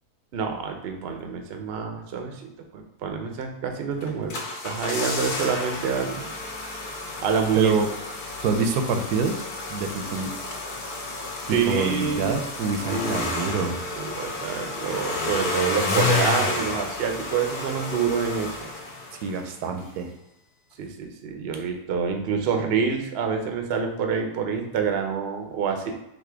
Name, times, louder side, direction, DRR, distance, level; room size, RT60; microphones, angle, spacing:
voice 1, 0.3-2.3 2.7-6.3 7.2-7.7 11.5-12.4 12.9-13.4 13.9-18.5 20.8-25.9, right 6 dB, 60° right, 4 dB, 0.6 m, -27 dB
sound 1, 4.0-19.5 19.8-19.9, left 3 dB, 80° left, 1.4 m, -31 dB
voice 2, 7.6-7.9 8.4-9.4 9.7-10.3 11.5-13.8 19.2-20.1, right 5 dB, 85° right, 5 dB, 1.1 m, -26 dB
4.1 x 2.8 x 4.4 m, 0.86 s
omnidirectional pair, 1.6 m